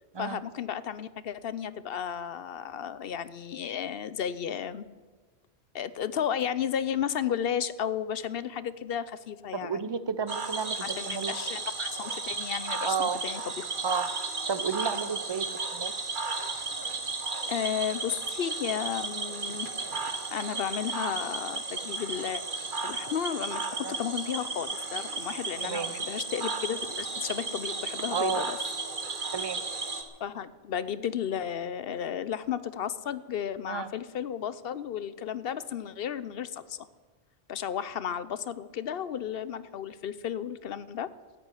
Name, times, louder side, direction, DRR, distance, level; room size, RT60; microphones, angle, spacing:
voice 1, 0.2-4.8 5.7-9.9 10.8-13.7 17.5-19.7 20.3-22.4 22.8-28.6 30.2-36.9 37.5-41.1, left 8 dB, 65° left, 16 dB, 0.8 m, -33 dB
voice 2, 9.5-11.3 12.8-13.2 13.8-14.1 14.5-15.9 23.8-24.0 25.6-26.0 28.1-28.5 29.3-29.6 33.7-33.9, right 6 dB, 30° right, 13 dB, 0.6 m, -31 dB
Cricket / Frog, 10.3-30.0, right 4 dB, 50° right, 1.5 m, -34 dB
13.5 x 8.7 x 9.9 m, 1.4 s
omnidirectional pair, 1.1 m